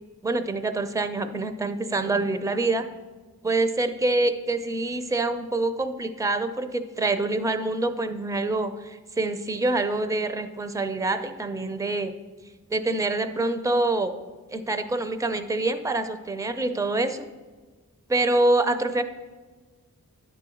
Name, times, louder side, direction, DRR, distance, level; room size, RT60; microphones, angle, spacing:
voice 1, 0.2-2.8 3.4-12.1 12.7-14.1 14.5-17.2 18.1-19.0, right 2 dB, 10° right, 9 dB, 0.5 m, -26 dB
10.5 x 3.8 x 6.3 m, 1.3 s
wide cardioid pair, 45°, 38 cm